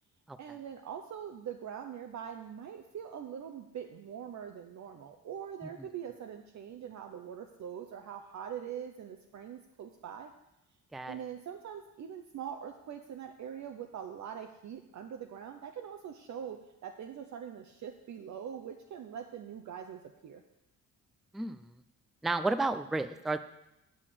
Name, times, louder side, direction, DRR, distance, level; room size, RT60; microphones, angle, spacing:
voice 1, 0.4-10.3 11.1-20.4, right 8 dB, 60° right, 4 dB, 0.8 m, -43 dB
voice 2, 22.2-23.4, right 2 dB, ahead, 11 dB, 0.4 m, -31 dB
8.4 x 6.4 x 7.5 m, 0.89 s
cardioid pair, 125°, 32 cm